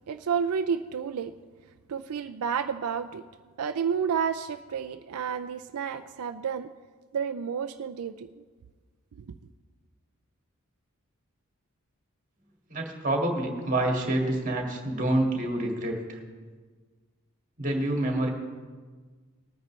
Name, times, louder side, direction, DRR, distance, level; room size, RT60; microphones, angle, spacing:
voice 1, 0.1-1.3 1.9-3.2 3.6-6.7 7.1-8.4 9.1-9.3, right 7 dB, 90° right, 8 dB, 0.4 m, -30 dB
voice 2, 12.7-16.2 17.6-18.3, right 1 dB, 35° right, 1 dB, 1.8 m, -27 dB
19.5 x 9.3 x 3.1 m, 1.5 s
head